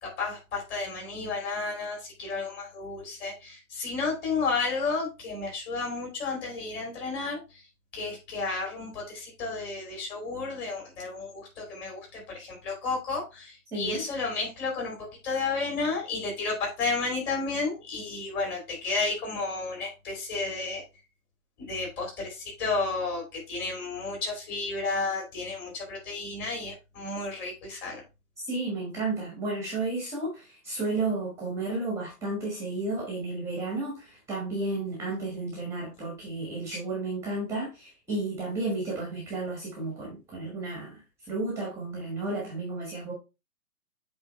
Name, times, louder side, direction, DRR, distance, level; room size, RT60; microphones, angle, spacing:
voice 1, 0.0-7.4 7.9-15.0 15.2-20.8 21.6-28.0, left 3 dB, 20° left, -1 dB, 2.8 m, -32 dB
voice 2, 13.7-14.0 28.4-41.0 41.3-43.1, right 2 dB, 5° right, -3 dB, 1.5 m, -32 dB
8.2 x 3.6 x 3.2 m, 0.27 s
hypercardioid pair, 145°, 46 cm